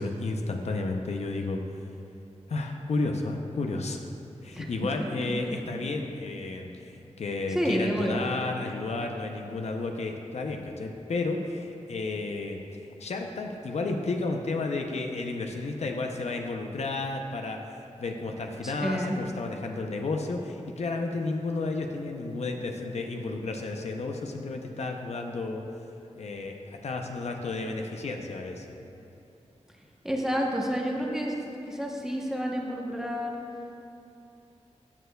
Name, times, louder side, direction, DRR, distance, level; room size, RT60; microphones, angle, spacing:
voice 1, 0.0-1.6 2.5-4.0 4.4-12.6 13.0-17.6 18.0-25.6 26.2-28.7, left 3 dB, 70° left, 3 dB, 0.6 m, -32 dB
voice 2, 5.2-5.6 7.5-8.2 18.6-19.2 30.0-31.3 31.7-33.4, equal, 5° right, -1 dB, 0.8 m, -29 dB
13.0 x 6.7 x 2.2 m, 2.7 s
wide cardioid pair, 130°, 12 cm